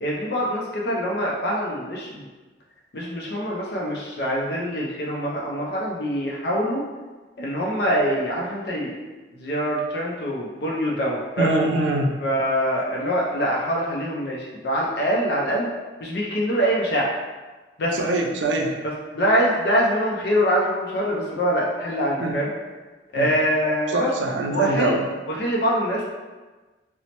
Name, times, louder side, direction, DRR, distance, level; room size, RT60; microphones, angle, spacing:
voice 1, 0.0-2.2 2.9-6.8 7.4-9.0 9.4-11.5 12.2-15.7 16.0-17.1 17.8-18.0 19.1-22.5 23.1-24.1 24.5-25.0 25.3-26.0, equal, 65° left, -3 dB, 0.4 m, -24 dB
voice 2, 11.4-12.1 17.9-18.8 22.2-22.4 23.2-23.3 23.9-25.1, right 2 dB, 85° right, 2 dB, 0.4 m, -23 dB
3.0 x 2.0 x 2.8 m, 1.3 s
head